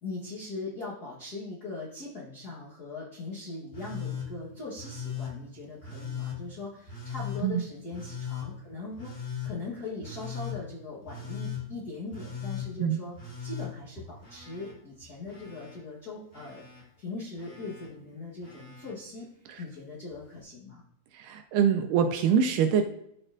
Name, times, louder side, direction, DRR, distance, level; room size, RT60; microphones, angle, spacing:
voice 1, 0.0-13.1 13.4-16.6 17.0-19.3 19.6-20.8, left 3 dB, 75° left, -6 dB, 0.9 m, -40 dB
Telephone, 3.7-4.3 4.8-5.3 5.8-6.4 6.9-7.4 7.9-8.5 9.0-9.5 10.0-10.6 11.1-11.6 12.1-12.7 13.2-14.7 15.0-15.8 16.3-16.8 17.4-17.9 18.4-18.9 20.1-20.2, left 7 dB, 25° left, 1.7 m, -38 dB
voice 2, 21.1-22.8, right 7 dB, 80° right, 6 dB, 1.9 m, -24 dB
13.0 x 4.3 x 2.5 m, 0.75 s
omnidirectional pair, 4.0 m